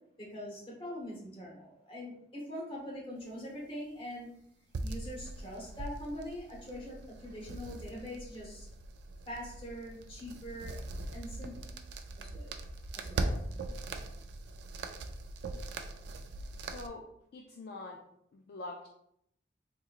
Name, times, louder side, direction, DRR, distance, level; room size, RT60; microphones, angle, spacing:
voice 1, 0.2-4.3 4.8-8.7 9.3-10.8 11.1-11.7 12.1-12.5 12.9-13.4, equal, 30° left, -3 dB, 1.0 m, -43 dB
sound 1, 4.7-16.9, right 2 dB, 70° right, 0.3 m, -41 dB
voice 2, 16.6-18.0 18.3-18.9, left 2 dB, 55° left, 2 dB, 0.3 m, -45 dB
3.8 x 2.9 x 2.4 m, 0.74 s
head